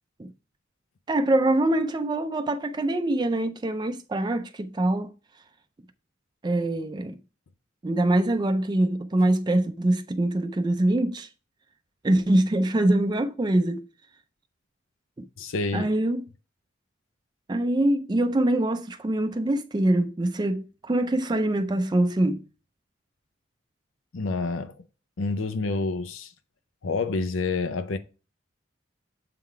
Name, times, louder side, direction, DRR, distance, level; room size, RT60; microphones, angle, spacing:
voice 1, 1.1-5.1 6.4-7.2 7.8-11.3 12.0-13.9 15.2-15.3 15.7-16.2 17.5-22.4, right 1 dB, 20° right, 0.4 m, -24 dB
voice 2, 15.4-15.9 24.1-24.8 25.2-26.3 26.8-28.0, left 3 dB, 90° left, 0.6 m, -28 dB
7.4 x 3.7 x 4.5 m
head